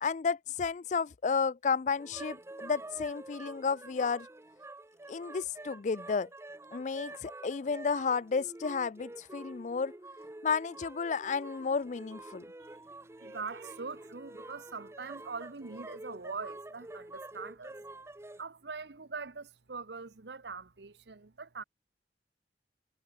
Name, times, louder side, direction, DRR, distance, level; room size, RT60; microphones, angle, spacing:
voice 1, 0.0-4.3 5.1-6.3 6.7-9.9 10.4-12.4, left 5 dB, 45° left, 0.4 m, -32 dB
sound 1, 2.0-18.4, right 2 dB, 15° right, 0.7 m, -48 dB
voice 2, 13.2-17.8 18.4-21.6, right 4 dB, 75° right, 1.0 m, -42 dB
head